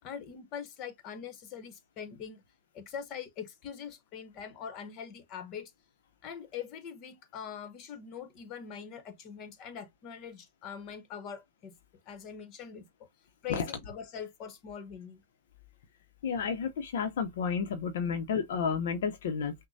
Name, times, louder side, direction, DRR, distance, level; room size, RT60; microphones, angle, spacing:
voice 1, 0.0-2.4 2.7-5.7 6.2-11.7 12.1-12.9 13.4-15.2 18.0-18.2, left 7 dB, 40° left, 1.0 m, -43 dB
voice 2, 16.2-19.5, left 6 dB, 70° left, 0.7 m, -31 dB
6.1 x 2.1 x 2.7 m
hypercardioid pair, 120°, 0 cm